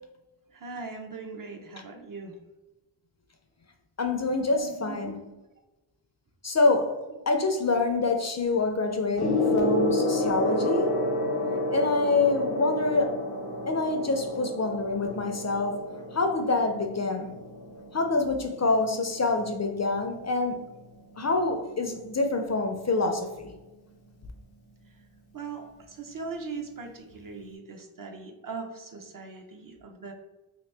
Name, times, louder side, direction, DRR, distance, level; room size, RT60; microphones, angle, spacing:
voice 1, 0.5-2.4 4.6-5.1 24.9-25.0 25.3-30.1, right 4 dB, 45° right, 0.6 m, -40 dB
voice 2, 4.0-5.1 6.4-7.0 7.3-11.0 11.7-13.2 13.7-15.9 16.1-17.3 17.9-20.7 21.2-23.5, left 3 dB, 35° left, 0.4 m, -26 dB
Gong, 9.2-18.9 19.9-20.1, left 1 dB, 85° left, 0.9 m, -30 dB
2.9 x 2.6 x 3.3 m
wide cardioid pair, 55°, 46 cm